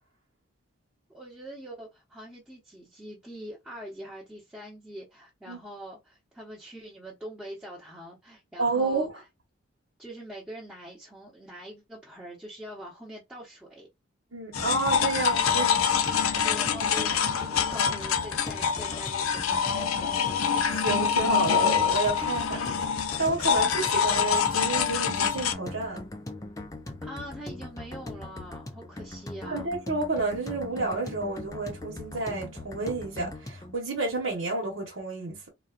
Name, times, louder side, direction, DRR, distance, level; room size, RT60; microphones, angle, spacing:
voice 1, 1.1-9.1 10.0-13.9 16.4-20.2 27.0-29.7, equal, 5° right, 0.9 m, -43 dB
voice 2, 8.6-9.1 14.3-15.8 16.1-16.4 20.7-22.6 22.9-26.0 29.4-35.5, right 3 dB, 65° right, 1.1 m, -30 dB
sound 1, 14.5-25.5, left 7 dB, 85° left, 0.5 m, -26 dB
sound 2, 14.6-33.8, left 2 dB, 15° left, 0.4 m, -40 dB
3.8 x 2.3 x 2.4 m
head